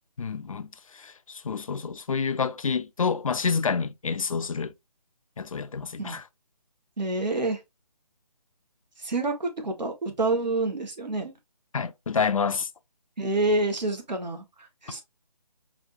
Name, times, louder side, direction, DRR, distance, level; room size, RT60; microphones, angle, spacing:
voice 1, 0.2-0.7 0.9-4.7 5.4-6.2 11.7-12.7, left 5 dB, 55° left, 0.4 m, -28 dB
voice 2, 7.0-7.6 9.0-11.3 13.2-15.0, right 2 dB, 90° right, 1.5 m, -28 dB
4.9 x 2.6 x 2.6 m
hypercardioid pair, 170°, 21 cm